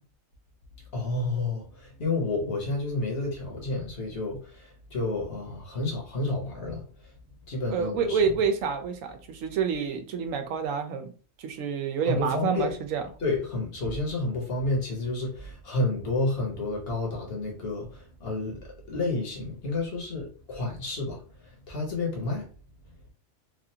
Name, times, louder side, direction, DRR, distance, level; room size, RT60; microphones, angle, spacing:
voice 1, 0.9-7.1 7.5-8.3 12.0-12.7 13.2-22.5, left 2 dB, 50° left, 1.2 m, -30 dB
voice 2, 7.7-11.1 11.4-13.0, right 6 dB, 85° right, 1.0 m, -28 dB
3.2 x 2.5 x 2.7 m
omnidirectional pair, 1.3 m